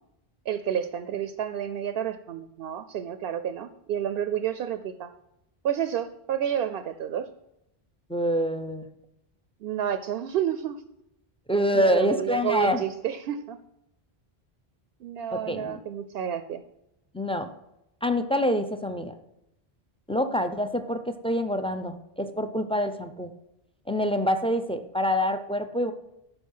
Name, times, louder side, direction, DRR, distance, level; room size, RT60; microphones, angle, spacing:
voice 1, 0.5-5.1 5.6-7.3 9.6-10.8 11.7-13.6 15.0-16.6, right 9 dB, 75° right, 11 dB, 0.8 m, -30 dB
voice 2, 8.1-8.9 11.5-12.8 15.3-15.8 17.1-17.5 18.0-19.1 20.1-23.3 23.9-25.9, equal, 5° left, 8 dB, 0.5 m, -26 dB
12.5 x 4.8 x 5.5 m, 0.84 s
omnidirectional pair, 1.0 m